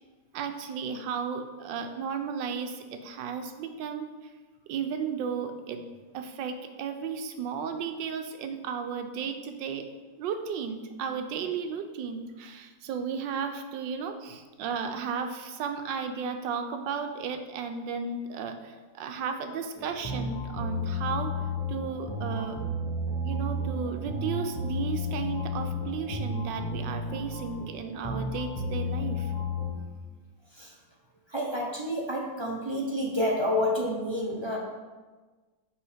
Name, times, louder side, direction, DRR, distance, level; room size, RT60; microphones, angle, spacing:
voice 1, 0.3-4.0 4.7-5.8 6.1-9.9 10.2-21.3 21.7-22.6 23.2-29.3, right 6 dB, 80° right, 6 dB, 1.3 m, -34 dB
sound 1, 19.8-29.7, left 2 dB, 20° left, 0.8 m, -32 dB
voice 2, 31.3-34.6, left 1 dB, 35° right, -2 dB, 0.4 m, -29 dB
5.9 x 5.4 x 4.9 m, 1.3 s
omnidirectional pair, 2.0 m